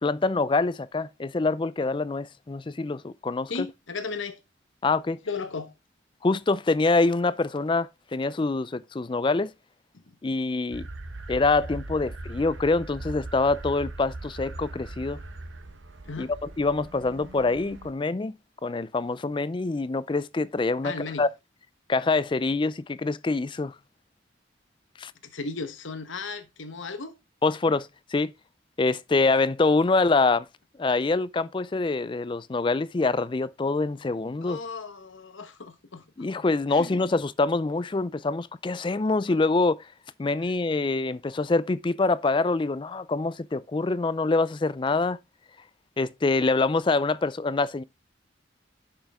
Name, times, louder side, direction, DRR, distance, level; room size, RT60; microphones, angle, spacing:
voice 1, 0.0-3.5 4.8-5.2 6.2-9.5 10.2-10.9 11.3-15.2 16.2-16.3 16.6-18.3 18.6-20.9 21.2-21.3 21.9-23.7 25.0-25.1 27.4-28.3 28.8-30.5 30.8-34.6 36.2-39.9 40.2-45.2 46.0-47.8, left 3 dB, 25° left, 0.4 m, -25 dB
voice 2, 3.5-4.4 5.3-5.7 16.0-16.3 20.8-21.2 25.2-27.1 34.4-36.3 36.7-37.1, left 4 dB, 90° left, 1.1 m, -35 dB
sound 1, 10.7-17.9, right 2 dB, 85° right, 1.1 m, -40 dB
10.5 x 5.9 x 3.5 m
head